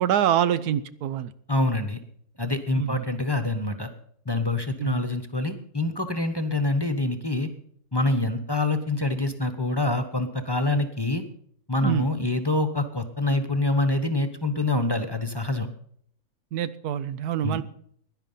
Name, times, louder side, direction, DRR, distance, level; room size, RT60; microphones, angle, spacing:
voice 1, 0.0-1.3 2.7-3.0 4.8-5.0 11.8-12.0 16.5-17.6, right 10 dB, 85° right, 14 dB, 1.3 m, -25 dB
voice 2, 1.5-2.0 2.4-3.9 4.2-7.5 7.9-11.2 11.7-15.7 17.4-17.6, left 2 dB, 20° left, 8 dB, 1.0 m, -26 dB
16.0 x 11.0 x 5.6 m, 0.65 s
omnidirectional pair, 1.6 m